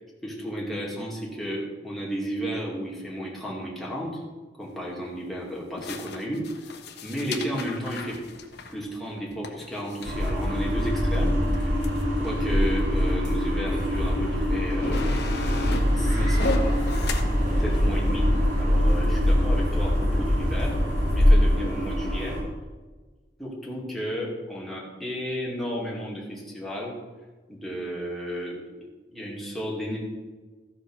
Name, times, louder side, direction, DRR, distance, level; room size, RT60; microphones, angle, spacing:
voice 1, 0.2-4.2 4.6-6.7 7.0-8.2 8.7-11.8 12.2-15.5 16.0-16.8 17.6-18.3 18.6-20.8 21.1-22.4 23.4-27.0 27.5-30.0, equal, ahead, -5 dB, 2.5 m, -33 dB
sound 1, 4.6-4.7 5.8-11.0 11.5-11.6 11.8-12.3 13.1-13.2 14.1-14.2 14.5-17.2, left 3 dB, 60° left, 1.0 m, -35 dB
sound 2, 10.0-22.4, equal, 75° right, 3.5 m, -25 dB
sound 3, 15.4-21.3, equal, 45° right, 3.7 m, -24 dB
14.5 x 5.2 x 6.2 m, 1.4 s
head